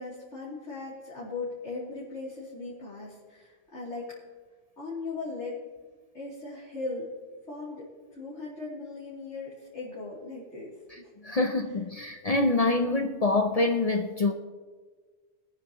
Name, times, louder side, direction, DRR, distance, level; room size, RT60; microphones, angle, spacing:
voice 1, 0.0-4.2 4.8-5.6 6.1-7.1 7.5-11.1, left 3 dB, 70° left, -9 dB, 3.3 m, -38 dB
voice 2, 11.2-14.3, left 2 dB, 40° left, 5 dB, 0.6 m, -25 dB
23.0 x 9.8 x 3.0 m, 1.5 s
omnidirectional pair, 1.2 m